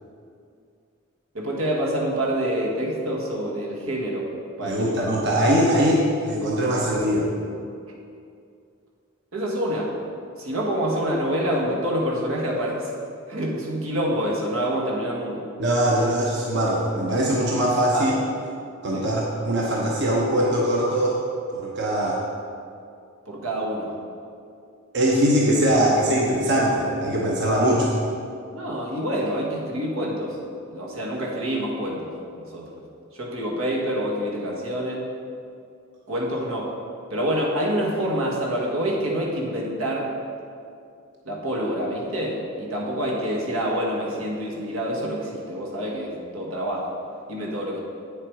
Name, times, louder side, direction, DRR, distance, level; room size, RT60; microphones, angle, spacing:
voice 1, 1.3-4.3 4.6-5.1 9.3-9.9 10.4-12.9 13.3-15.5 17.9-18.1 18.9-19.1 23.2-23.9 28.5-30.4 30.7-32.8 33.1-35.1 36.1-36.7 37.1-40.1 41.2-47.0 47.3-47.8, equal, 85° right, -2 dB, 1.8 m, -27 dB
voice 2, 4.6-7.3 15.6-18.1 18.8-21.2 21.5-22.2 24.9-27.9, right 1 dB, 55° right, -3 dB, 1.0 m, -21 dB
8.8 x 7.2 x 4.9 m, 2.4 s
head